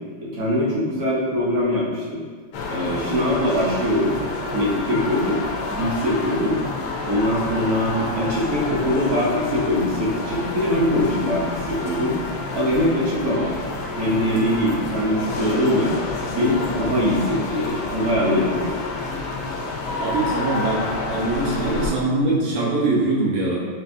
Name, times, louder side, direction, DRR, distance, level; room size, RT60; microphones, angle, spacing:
voice 1, 0.2-2.2 2.7-4.2 4.5-5.4 5.7-6.6 7.1-12.2 12.5-13.5 14.0-16.0 16.3-18.7, equal, 55° right, -6 dB, 0.9 m, -22 dB
sound 1, 2.5-21.9, left 3 dB, 80° left, 1.4 m, -29 dB
voice 2, 20.0-23.6, right 2 dB, 75° right, -6 dB, 0.5 m, -22 dB
5.1 x 2.7 x 2.5 m, 1.5 s
omnidirectional pair, 2.2 m